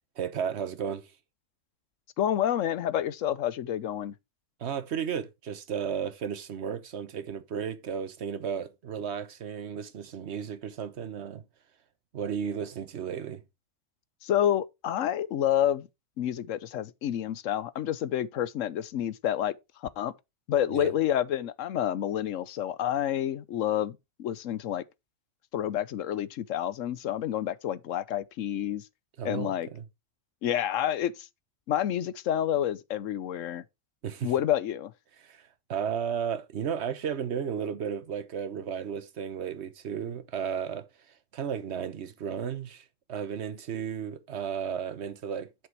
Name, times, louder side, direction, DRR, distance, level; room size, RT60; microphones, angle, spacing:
voice 1, 0.2-1.1 4.6-11.4 12.1-13.4 20.7-20.9 29.2-29.9 34.0-34.3 35.2-45.5, right 7 dB, 60° right, 1.2 m, -34 dB
voice 2, 2.2-4.1 14.2-15.9 16.2-19.5 20.0-20.1 20.5-24.8 25.5-28.8 29.2-29.7 30.4-31.3 31.7-33.6 34.2-34.9, left 11 dB, 85° left, 1.1 m, -29 dB
8.0 x 6.1 x 4.6 m
omnidirectional pair, 1.3 m